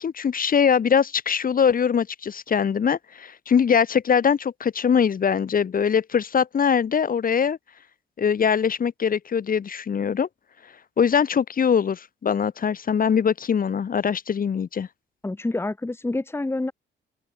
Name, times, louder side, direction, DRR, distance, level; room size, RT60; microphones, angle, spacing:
voice 1, 0.0-7.6 8.2-10.3 11.0-14.9, left 7 dB, 45° left, 1.9 m, -22 dB
voice 2, 15.2-16.7, left 2 dB, 10° left, 1.4 m, -27 dB
open air
cardioid pair, 90°, 20 cm